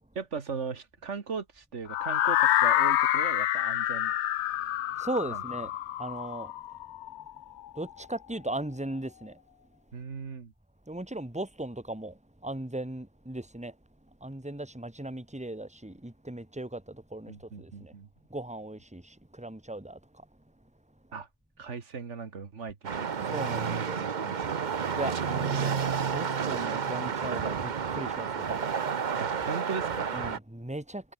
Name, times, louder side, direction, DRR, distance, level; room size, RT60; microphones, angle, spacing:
voice 1, 0.2-4.1 5.3-5.4 9.9-10.5 17.3-18.1 21.1-21.3 21.6-23.4 23.7-24.6 29.2-30.1, right 5 dB, 85° right, 2.0 m, -38 dB
sound 1, 1.9-7.8, left 12 dB, 75° left, 0.9 m, -27 dB
voice 2, 5.0-5.7 6.0-6.5 7.8-9.3 10.9-12.1 12.4-13.7 14.2-16.8 17.1-17.3 17.6-17.9 18.3-19.0 19.4-20.0 23.3-24.0 25.0-25.9 26.1-28.6 30.1-31.0, right 1 dB, 5° right, 2.1 m, -37 dB
sound 2, 22.8-30.4, right 6 dB, 45° right, 0.9 m, -30 dB
omnidirectional pair, 1.2 m